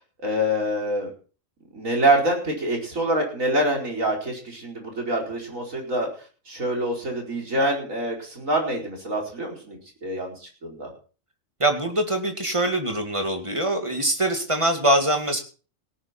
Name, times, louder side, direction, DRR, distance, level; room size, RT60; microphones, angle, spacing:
voice 1, 0.2-1.1 1.7-6.1 6.5-10.9, right 1 dB, 85° right, 0 dB, 5.0 m, -25 dB
voice 2, 11.6-15.4, right 1 dB, 25° right, 5 dB, 2.3 m, -23 dB
18.0 x 10.5 x 4.4 m, 0.38 s
omnidirectional pair, 1.4 m